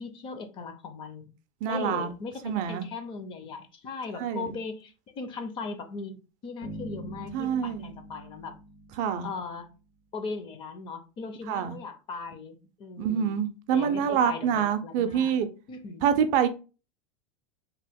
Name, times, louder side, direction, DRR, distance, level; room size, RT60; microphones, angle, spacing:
voice 1, 0.0-1.3 1.7-8.6 9.2-9.7 10.1-13.3 13.7-15.3 15.7-16.1, left 4 dB, 30° left, 0.5 m, -38 dB
voice 2, 1.6-2.1 2.4-2.9 4.2-4.5 7.3-7.9 9.0-9.3 11.5-11.8 13.0-15.5 16.0-16.5, right 8 dB, 50° right, 0.4 m, -26 dB
sound 1, 6.6-9.6, right 1 dB, 75° left, 1.3 m, -43 dB
2.9 x 2.0 x 3.4 m
supercardioid pair, 140°, 17 cm